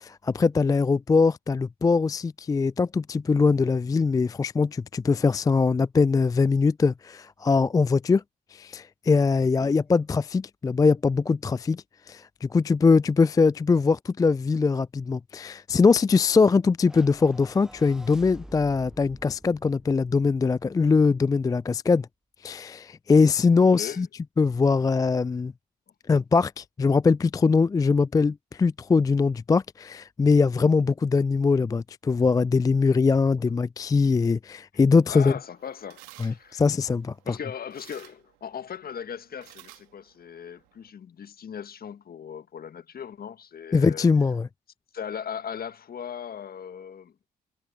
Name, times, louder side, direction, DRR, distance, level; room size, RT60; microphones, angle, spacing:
voice 1, 0.0-8.2 8.5-22.1 22.4-24.1 24.4-25.5 26.1-35.3 36.2-37.1 43.7-44.5, left 4 dB, 20° left, 0.3 m, -22 dB
voice 2, 9.4-9.8 23.6-24.0 35.1-36.6 37.3-44.1 44.9-47.1, left 8 dB, 50° left, 1.6 m, -38 dB
sound 1, 16.8-21.3, equal, 5° right, 1.0 m, -48 dB
sound 2, 34.8-40.9, right 25 dB, 80° right, 2.5 m, -55 dB
hypercardioid pair, 45°, 20 cm